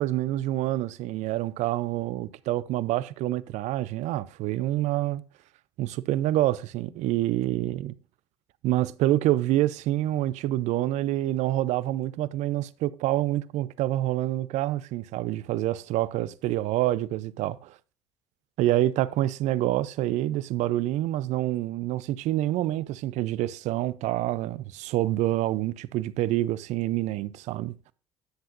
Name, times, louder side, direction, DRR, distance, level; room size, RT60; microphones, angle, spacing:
voice 1, 0.0-5.2 5.8-7.9 8.6-17.8 18.6-27.7, right 15 dB, 65° right, 0.5 m, -27 dB
10.5 x 7.7 x 2.5 m
hypercardioid pair, 70°, 13 cm